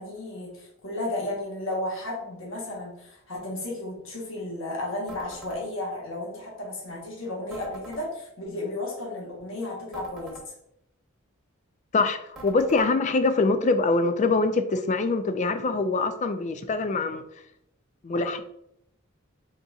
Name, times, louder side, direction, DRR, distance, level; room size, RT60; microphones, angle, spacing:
voice 1, 0.0-10.5, left 1 dB, 65° left, -3 dB, 1.2 m, -33 dB
sound 1, 5.1-5.6 7.5-8.0 9.9-10.5 12.4-12.9, right 1 dB, ahead, 1.1 m, -44 dB
voice 2, 11.9-17.2 18.0-18.4, left 3 dB, 35° left, 9 dB, 0.3 m, -24 dB
4.0 x 3.9 x 2.4 m, 0.76 s
head